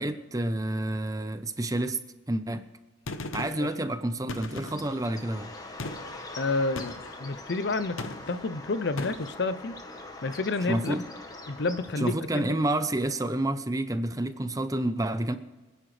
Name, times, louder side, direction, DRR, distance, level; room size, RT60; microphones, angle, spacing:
voice 1, 0.0-2.0 2.3-2.6 3.3-5.5 10.7-11.0 12.0-15.4, right 1 dB, 15° right, 10 dB, 0.6 m, -29 dB
Gunshot gunfire, 3.1-3.7 4.3-5.0 5.8-6.2 6.8-7.2 8.0-8.5 9.0-9.4, left 2 dB, 85° left, 1.0 m, -38 dB
Bird, 4.7-12.4, left 2 dB, 20° left, 1.2 m, -43 dB
voice 2, 6.3-8.0 8.3-9.7 10.2-11.0 11.5-12.5, left 3 dB, 55° left, 13 dB, 0.6 m, -30 dB
26.5 x 10.0 x 3.3 m, 1.2 s
head